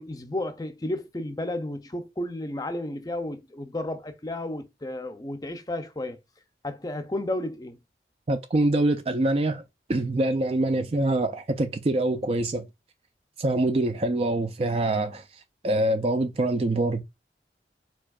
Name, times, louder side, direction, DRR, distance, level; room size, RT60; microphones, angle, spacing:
voice 1, 0.0-6.2 6.6-7.8, left 1 dB, 20° left, 0.5 m, -32 dB
voice 2, 8.3-9.6 9.9-12.7 13.4-17.0, right 2 dB, 35° right, 0.4 m, -25 dB
4.7 x 4.3 x 2.4 m
head